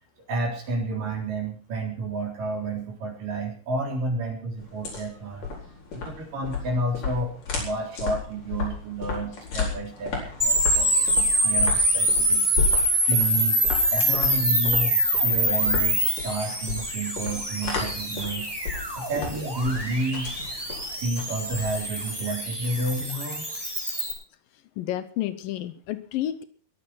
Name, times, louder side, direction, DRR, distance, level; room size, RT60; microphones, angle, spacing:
voice 1, 0.3-5.5 5.9-12.4 13.1-13.6 13.9-18.5 19.0-20.3 21.0-23.6, right 2 dB, 60° right, 2 dB, 5.3 m, -30 dB
sound 1, 4.6-22.1, left 5 dB, 60° left, 5.8 m, -33 dB
sound 2, 10.4-24.1, equal, 5° right, 3.4 m, -25 dB
voice 2, 24.8-26.4, left 13 dB, 75° left, 13 dB, 2.4 m, -30 dB
21.5 x 8.1 x 6.1 m, 0.43 s
omnidirectional pair, 4.3 m